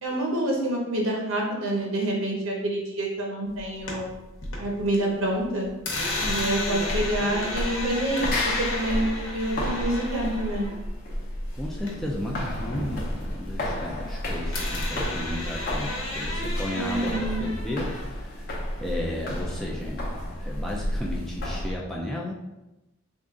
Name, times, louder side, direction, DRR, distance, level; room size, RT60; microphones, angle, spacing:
voice 1, 0.0-4.1 4.6-5.7 6.3-8.3 8.6-10.7 16.7-17.5, right 1 dB, 70° right, -1 dB, 0.9 m, -27 dB
sound 1, 3.6-5.0 5.3-12.2 12.5-14.2 14.5-18.0, left 2 dB, 65° left, 0.9 m, -34 dB
sound 2, 5.9-21.8, left 1 dB, 45° left, 0.7 m, -32 dB
voice 2, 11.5-18.5 18.8-22.3, left 1 dB, ahead, -4 dB, 0.3 m, -34 dB
3.7 x 2.4 x 3.7 m, 0.98 s
head